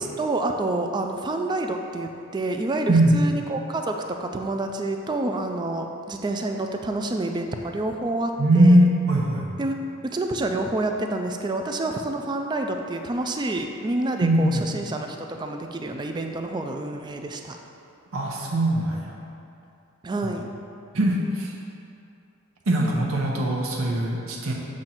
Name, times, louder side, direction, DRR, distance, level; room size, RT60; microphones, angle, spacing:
voice 1, 0.0-8.8 9.6-9.8 10.0-17.6 20.0-20.5 22.8-22.9, right 2 dB, 20° right, 4 dB, 0.3 m, -28 dB
voice 2, 2.9-3.2 8.4-9.5 14.2-14.6 18.1-19.2 20.2-20.3 20.9-21.5 22.7-24.5, right 1 dB, 85° right, -2 dB, 0.9 m, -20 dB
7.4 x 2.6 x 5.7 m, 2.6 s
head